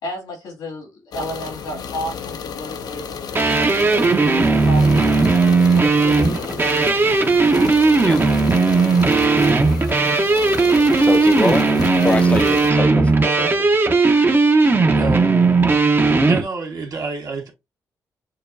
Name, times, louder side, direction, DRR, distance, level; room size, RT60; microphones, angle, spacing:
voice 1, 0.0-4.0 4.3-6.7, left 1 dB, 90° left, 2.2 m, -33 dB
sound 1, 1.1-12.7, left 7 dB, 70° left, 0.6 m, -32 dB
sound 2, 3.3-16.4, right 3 dB, 30° right, 0.8 m, -16 dB
voice 2, 11.0-11.7 12.0-13.7, left 2 dB, 20° left, 0.7 m, -24 dB
voice 3, 14.9-15.5 16.3-17.5, right 3 dB, 60° right, 1.5 m, -28 dB
6.6 x 2.3 x 2.6 m
cardioid pair, 65°, 7 cm